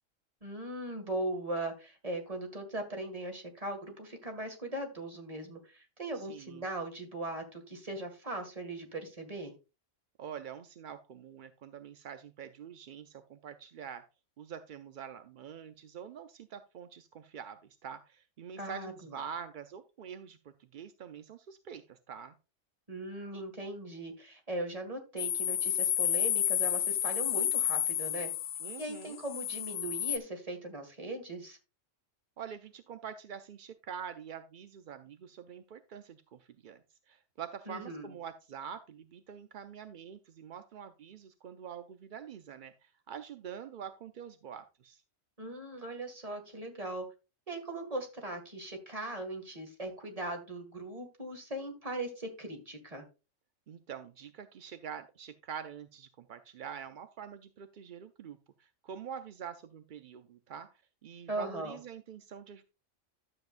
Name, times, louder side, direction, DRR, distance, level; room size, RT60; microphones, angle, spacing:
voice 1, 0.4-9.5 18.6-19.2 22.9-28.3 28.8-31.6 37.7-38.1 45.4-47.1 47.5-53.0 61.3-61.8, right 1 dB, 30° right, 4 dB, 2.0 m, -39 dB
voice 2, 6.1-6.6 10.2-14.0 14.4-22.3 28.6-29.2 32.4-36.8 37.1-45.0 53.7-60.7 61.0-62.6, right 8 dB, 55° right, 9 dB, 0.6 m, -45 dB
sound 1, 25.2-30.2, left 10 dB, 80° left, 1.0 m, -31 dB
12.0 x 7.5 x 2.5 m, 0.29 s
omnidirectional pair, 1.3 m